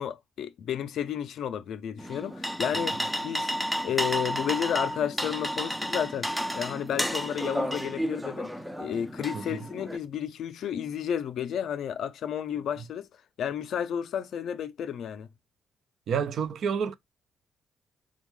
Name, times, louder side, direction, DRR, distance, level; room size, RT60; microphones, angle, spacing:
voice 1, 0.0-3.0 3.2-3.5 3.8-6.3 6.5-8.5 8.8-13.1 13.4-15.3, left 9 dB, 70° left, 0.4 m, -32 dB
sound 1, 2.0-10.0, equal, 5° right, 0.4 m, -32 dB
voice 2, 16.1-16.9, right 7 dB, 65° right, 0.4 m, -29 dB
3.5 x 2.2 x 3.1 m
cardioid pair, 90°, 0 cm